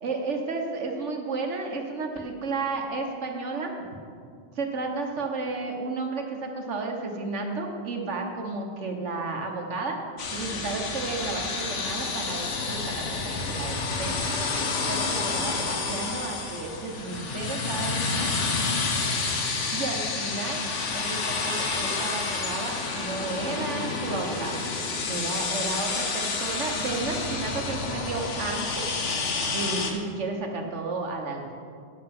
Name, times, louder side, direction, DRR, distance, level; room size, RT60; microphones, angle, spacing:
voice 1, 0.0-3.7 4.5-10.0 10.3-14.2 14.9-18.3 19.7-20.7 20.9-24.6 25.1-28.9 29.5-31.5, right 3 dB, 80° right, 2 dB, 1.5 m, -32 dB
sound 1, 10.2-29.9, left 4 dB, 85° left, 1.4 m, -29 dB
8.9 x 7.6 x 5.9 m, 2.2 s
omnidirectional pair, 1.2 m